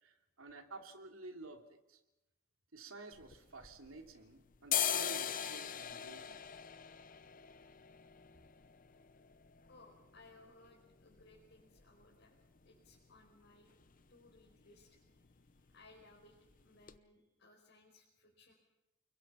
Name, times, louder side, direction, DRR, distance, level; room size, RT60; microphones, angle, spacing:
voice 1, 0.0-2.0 2.7-6.4, right 2 dB, 85° right, 4 dB, 2.8 m, -52 dB
sound 1, 3.1-4.2 4.5-12.2 12.6-12.7 12.9-13.5 13.8-14.0 14.3-14.5 14.8-15.5 15.8-16.0 16.5-16.6 16.9-17.0, left 9 dB, 40° left, 0.9 m, -41 dB
voice 2, 9.7-12.3 12.6-13.7 14.1-15.0 15.3-15.4 15.7-18.5, left 2 dB, 60° left, -2 dB, 5.0 m, -63 dB
30.0 x 22.5 x 5.7 m, 0.96 s
head